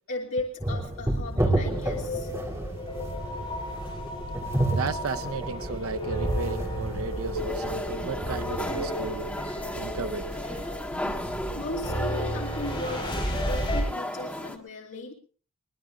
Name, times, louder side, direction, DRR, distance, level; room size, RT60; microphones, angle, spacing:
voice 1, 0.1-2.3 11.5-15.1, left 2 dB, 65° left, 2.6 m, -36 dB
sound 1, 0.6-8.4, right 1 dB, 15° right, 3.1 m, -31 dB
sound 2, 1.6-13.8, equal, 25° left, 7.4 m, -33 dB
voice 2, 4.7-9.3 9.8-11.7, right 4 dB, 80° right, 0.7 m, -36 dB
sound 3, 7.4-14.6, left 1 dB, 5° left, 1.7 m, -35 dB
22.0 x 21.0 x 2.5 m
head